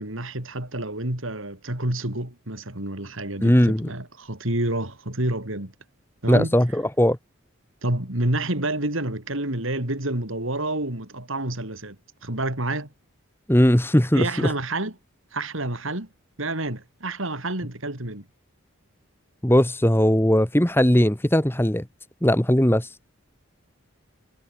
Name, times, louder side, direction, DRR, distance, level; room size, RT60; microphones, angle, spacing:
voice 1, 0.0-5.7 6.2-6.6 7.8-12.0 12.2-12.9 14.1-14.9 15.3-16.1 16.4-18.3, right 1 dB, 70° right, 4.4 m, -28 dB
voice 2, 3.4-3.9 6.3-7.2 13.5-14.5 19.4-21.8 22.2-23.0, equal, 10° left, 1.4 m, -19 dB
head